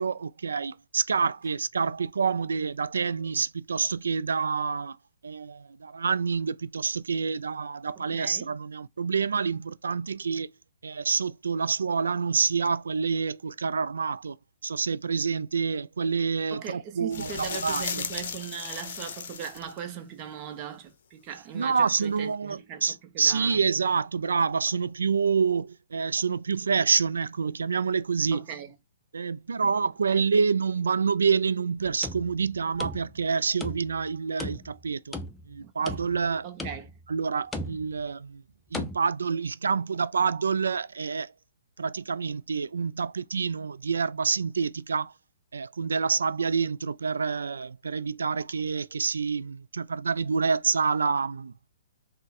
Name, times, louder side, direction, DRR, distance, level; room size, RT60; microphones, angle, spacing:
voice 1, 0.0-5.0 5.2-10.5 10.8-14.4 14.6-18.1 21.5-28.5 29.1-35.1 35.5-36.5 37.1-38.4 38.7-41.3 41.8-45.1 45.5-51.5, right 5 dB, 85° right, 0.3 m, -27 dB
voice 2, 8.0-8.5 16.5-22.8 23.1-23.6 28.3-28.7 30.1-30.2 35.6-35.9 36.4-36.9, right 8 dB, 35° right, 0.7 m, -39 dB
sound 1, 17.1-19.8 22.0-22.1, left 7 dB, 60° left, 0.6 m, -35 dB
sound 2, 31.8-33.3 33.6-34.1 34.4-35.5 35.9-36.3 36.6-37.1 37.5-38.0 38.7-39.0, left 1 dB, 10° left, 0.5 m, -37 dB
3.6 x 2.1 x 4.1 m
hypercardioid pair, 145°, 0 cm